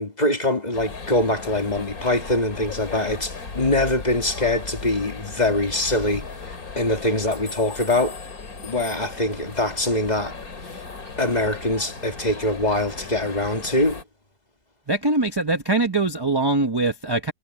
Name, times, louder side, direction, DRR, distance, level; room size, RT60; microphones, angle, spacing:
voice 1, 0.0-6.3 6.8-8.2 8.6-10.4 10.7-10.8 11.2-14.0, left 1 dB, 25° left, 2.3 m, -23 dB
sound 1, 0.7-14.0, left 4 dB, 55° left, 3.0 m, -36 dB
voice 2, 14.9-17.3, right 2 dB, 20° right, 0.7 m, -22 dB
omnidirectional pair, 1.9 m